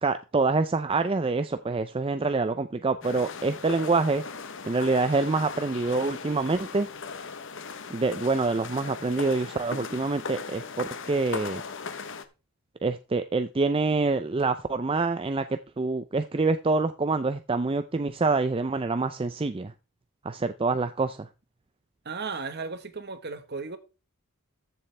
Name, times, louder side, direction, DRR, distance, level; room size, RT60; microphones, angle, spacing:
voice 1, 0.0-4.2 4.7-6.9 7.9-11.6 12.8-19.7 20.2-21.3, right 3 dB, 25° right, 0.4 m, -26 dB
sound 1, 3.0-12.2, left 5 dB, 55° left, 1.0 m, -38 dB
voice 2, 22.0-23.8, right 4 dB, 50° right, 1.3 m, -35 dB
14.0 x 7.3 x 3.3 m
head